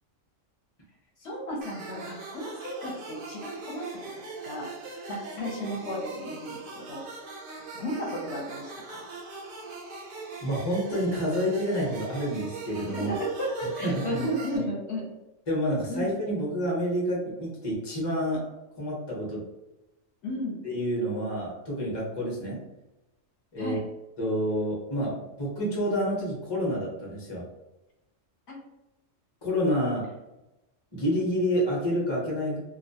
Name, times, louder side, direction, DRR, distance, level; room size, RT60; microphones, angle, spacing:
voice 1, 1.2-3.9 4.4-4.7 5.1-6.6 6.9-7.0 7.7-9.0 12.9-15.0 15.9-16.1 20.2-20.6 22.4-22.6 23.6-23.8 28.5-28.6, equal, 65° left, -3 dB, 0.8 m, -33 dB
sound 1, 1.6-14.6, right 3 dB, 60° right, 0.6 m, -41 dB
voice 2, 10.4-13.1 13.8-14.3 14.6-14.7 15.5-18.5 18.8-19.4 20.6-22.6 23.5-23.8 24.2-27.4 29.4-30.0 30.9-32.6, equal, 25° left, -4 dB, 0.6 m, -28 dB
2.2 x 2.1 x 2.6 m, 0.95 s
omnidirectional pair, 1.3 m